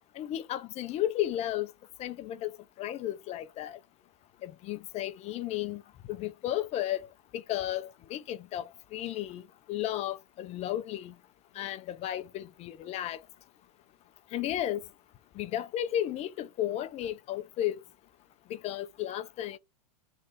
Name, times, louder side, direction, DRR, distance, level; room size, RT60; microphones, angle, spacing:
voice 1, 0.1-1.7 2.0-2.5 2.8-3.8 4.4-5.8 6.1-7.1 7.3-9.4 9.7-11.1 11.5-13.2 14.3-14.8 15.4-17.8 18.5-19.6, left 12 dB, 35° left, 0.5 m, -33 dB
3.3 x 2.7 x 4.5 m
hypercardioid pair, 110°, 20 cm